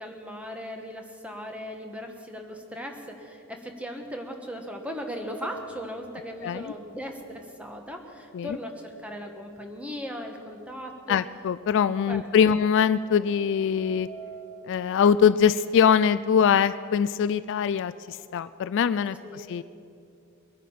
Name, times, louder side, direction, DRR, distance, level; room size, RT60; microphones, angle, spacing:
voice 1, 0.0-11.2 12.1-12.6 19.2-19.5, equal, 5° right, 3 dB, 1.3 m, -38 dB
sound 1, 4.8-8.8 9.2-9.3 10.3-10.4 10.7-14.6, right 5 dB, 30° left, 1.7 m, -48 dB
voice 2, 6.4-6.7 8.3-8.6 11.1-14.1 14.7-19.6, left 7 dB, 55° left, 15 dB, 0.3 m, -23 dB
22.0 x 9.3 x 5.7 m, 2.6 s
head